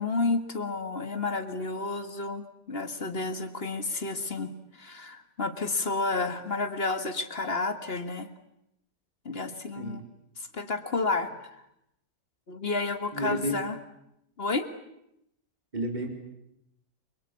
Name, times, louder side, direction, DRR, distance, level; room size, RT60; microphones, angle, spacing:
voice 1, 0.0-8.3 9.3-10.1 10.4-11.5 12.5-13.8 14.4-14.7, left 3 dB, 35° left, 9 dB, 2.0 m, -31 dB
voice 2, 13.1-13.5 15.7-16.1, right 1 dB, 25° right, 3 dB, 4.8 m, -31 dB
29.0 x 23.5 x 8.5 m, 0.81 s
omnidirectional pair, 1.8 m